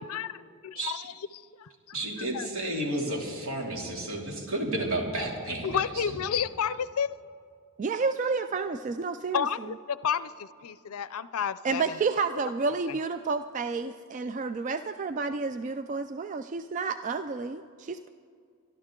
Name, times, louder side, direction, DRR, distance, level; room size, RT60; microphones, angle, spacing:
voice 1, 0.0-2.0 2.3-2.5 5.6-7.1 9.3-12.0 12.9-13.0, left 7 dB, 80° left, 16 dB, 0.5 m, -31 dB
voice 2, 1.9-6.0, right 1 dB, 70° right, 0 dB, 2.7 m, -32 dB
voice 3, 7.8-9.5 11.6-18.1, right 4 dB, 35° right, 10 dB, 0.3 m, -30 dB
23.5 x 12.5 x 3.7 m, 2.2 s
head